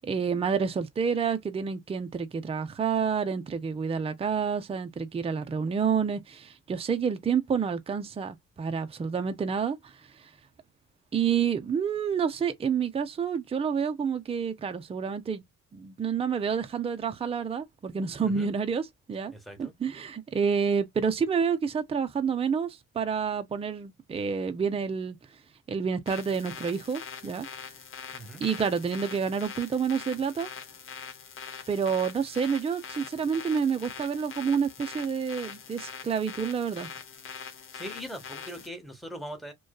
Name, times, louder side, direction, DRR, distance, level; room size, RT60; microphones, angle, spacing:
voice 1, 0.0-10.3 11.1-15.4 15.7-18.8 19.1-19.3 19.6-25.2 25.7-27.5 28.4-30.5 31.7-36.9, right 6 dB, 20° right, 0.4 m, -29 dB
voice 2, 19.3-19.7 28.1-28.4 37.7-39.5, equal, ahead, 0.9 m, -41 dB
sound 1, 26.1-38.7, left 6 dB, 45° left, 0.6 m, -43 dB
2.6 x 2.3 x 2.2 m
cardioid pair, 90°, 30 cm